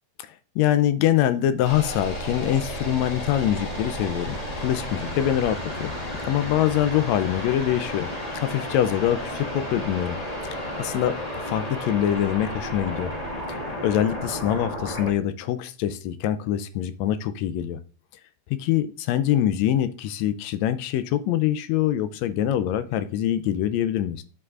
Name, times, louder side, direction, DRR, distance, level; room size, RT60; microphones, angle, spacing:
voice 1, 0.2-5.9 6.3-10.2 10.4-13.1 13.5-17.8 18.5-24.2, left 11 dB, 80° left, 1.6 m, -24 dB
sound 1, 1.6-15.1, equal, 40° left, 0.5 m, -32 dB
11.0 x 4.7 x 2.4 m
omnidirectional pair, 3.6 m